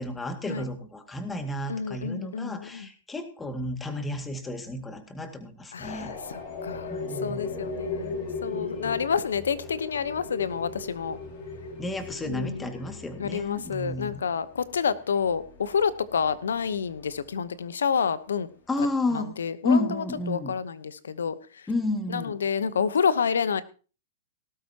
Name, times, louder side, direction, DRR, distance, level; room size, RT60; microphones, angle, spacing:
voice 1, 0.0-6.1 6.9-7.7 8.6-9.0 11.8-14.2 18.7-20.5 21.7-22.4, left 2 dB, 10° left, 2.1 m, -31 dB
voice 2, 1.7-2.9 5.7-11.2 12.2-12.7 13.2-18.5 19.1-21.3 22.1-23.6, left 6 dB, 85° left, 1.0 m, -29 dB
sound 1, 5.8-17.4, left 3 dB, 50° left, 4.5 m, -38 dB
18.5 x 12.5 x 2.9 m
hypercardioid pair, 120°, 0 cm